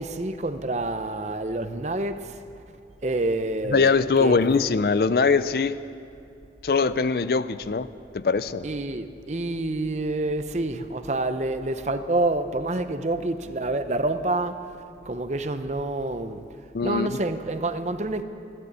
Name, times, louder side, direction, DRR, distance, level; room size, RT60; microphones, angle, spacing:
voice 1, 0.0-2.3 3.0-3.9 4.2-4.6 8.6-14.6 15.0-16.4 16.8-18.2, right 2 dB, 40° right, 0.7 m, -27 dB
voice 2, 3.7-5.8 6.6-7.9 8.1-8.6 16.7-17.1, left 4 dB, 55° left, 0.4 m, -22 dB
13.5 x 12.5 x 8.1 m
head